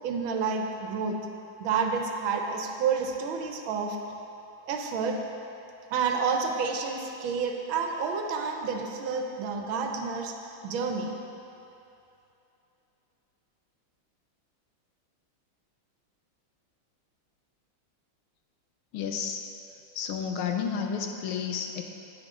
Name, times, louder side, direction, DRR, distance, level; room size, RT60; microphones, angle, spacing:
voice 1, 0.0-1.2 1.6-4.0 4.7-5.2 5.9-10.4 10.6-11.2, right 5 dB, 75° right, 3 dB, 1.5 m, -29 dB
voice 2, 18.9-19.4 19.9-21.8, left 7 dB, 85° left, 4 dB, 1.6 m, -31 dB
10.5 x 8.2 x 3.7 m, 2.8 s
omnidirectional pair, 2.3 m